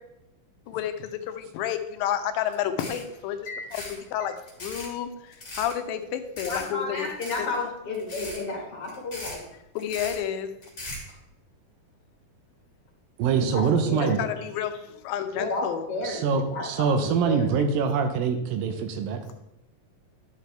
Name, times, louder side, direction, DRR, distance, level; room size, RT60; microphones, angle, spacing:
voice 1, 0.7-3.4 3.7-7.1 7.4-7.5 9.8-10.5 13.6-15.8, left 9 dB, 90° left, 8 dB, 2.5 m, -31 dB
sound 1, 2.5-2.6 2.8-3.1 3.6-4.0 4.4-4.9 5.3-5.7 6.4-6.7 7.0-7.6 7.9-8.4 8.8-9.4 9.8-10.2 10.6-11.1, left 1 dB, 20° left, 2.7 m, -38 dB
voice 2, 6.5-9.4 13.4-14.3 15.3-17.6 19.2-19.3, left 3 dB, 50° left, -1 dB, 2.3 m, -32 dB
voice 3, 13.2-14.2 16.0-19.2, right 6 dB, 85° right, 6 dB, 2.6 m, -24 dB
11.0 x 6.7 x 3.3 m, 0.86 s
omnidirectional pair, 4.0 m